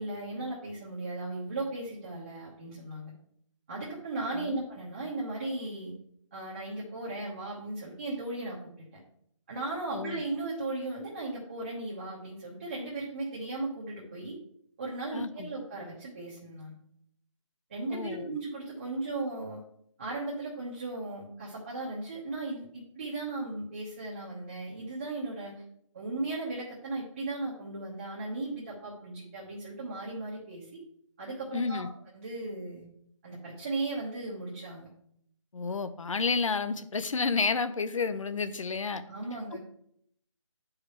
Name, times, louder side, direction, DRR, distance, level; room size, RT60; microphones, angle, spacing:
voice 1, 0.0-3.1 3.7-5.9 6.3-9.0 9.5-14.4 14.8-16.7 17.7-19.6 20.0-25.6 25.9-30.8 31.2-31.9 32.1-32.9 33.2-34.9 39.1-39.6, right 2 dB, 25° right, -5 dB, 1.1 m, -36 dB
voice 2, 9.9-10.2 15.1-15.5 17.9-18.3 31.5-31.9 35.5-39.0 39.5-39.6, left 4 dB, 75° left, 11 dB, 0.8 m, -31 dB
8.8 x 4.9 x 3.2 m, 0.70 s
hypercardioid pair, 175°, 17 cm